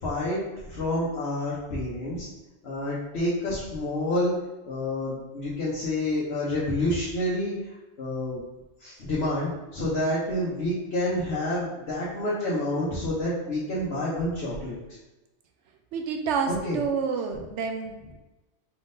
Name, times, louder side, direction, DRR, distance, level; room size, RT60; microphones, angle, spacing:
voice 1, 0.0-2.3 2.6-4.3 4.6-7.6 8.0-8.4 8.8-14.8 16.5-16.8 17.3-17.4, left 1 dB, 65° left, -7 dB, 1.2 m, -28 dB
voice 2, 15.9-18.2, right 5 dB, 80° right, 4 dB, 0.9 m, -29 dB
4.6 x 3.6 x 2.6 m, 1.1 s
omnidirectional pair, 1.2 m